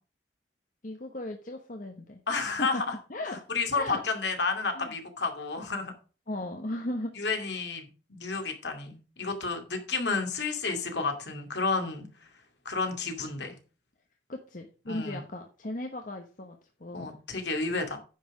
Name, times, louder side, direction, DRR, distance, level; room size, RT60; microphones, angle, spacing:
voice 1, 0.8-2.2 2.6-2.8 3.1-3.5 3.7-4.0 4.7-4.9 6.3-7.2 14.3-17.1, left 1 dB, 45° left, 3 dB, 1.1 m, -37 dB
voice 2, 2.3-3.0 3.5-5.9 7.2-12.1 12.6-13.6 14.9-15.2 16.9-18.0, left 4 dB, 70° left, 4 dB, 2.4 m, -31 dB
9.9 x 6.0 x 4.9 m, 0.35 s
head